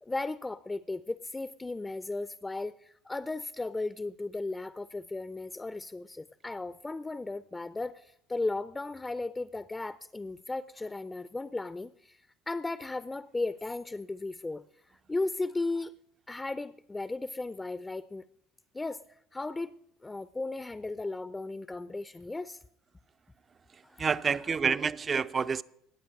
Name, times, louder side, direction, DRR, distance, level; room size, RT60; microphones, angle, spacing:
voice 1, 0.0-16.0 16.3-18.3 18.7-22.6 23.8-24.3, left 2 dB, 15° left, 0.5 m, -36 dB
voice 2, 23.7-25.6, right 5 dB, 35° right, 0.5 m, -29 dB
19.0 x 8.6 x 5.3 m
hypercardioid pair, 60°, 0 cm